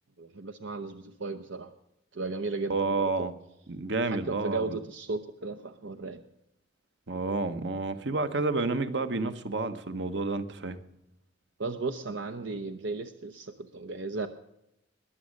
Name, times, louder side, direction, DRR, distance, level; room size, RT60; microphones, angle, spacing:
voice 1, 0.2-1.7 2.1-3.3 4.0-6.2 11.6-14.3, right 3 dB, 85° right, 0.8 m, -35 dB
voice 2, 2.7-3.3 3.7-4.8 7.1-10.8, right 3 dB, 65° right, 1.0 m, -30 dB
21.0 x 7.4 x 6.4 m
head